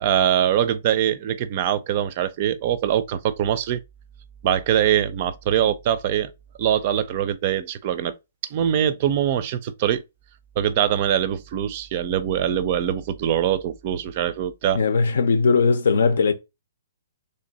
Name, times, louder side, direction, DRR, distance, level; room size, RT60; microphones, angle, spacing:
voice 1, 0.0-3.8 4.4-6.3 6.6-8.1 8.5-10.0 10.6-14.8, right 10 dB, 35° right, 0.4 m, -23 dB
voice 2, 14.7-16.3, left 4 dB, 75° left, 0.6 m, -19 dB
3.4 x 2.6 x 3.9 m
hypercardioid pair, 165°, 0 cm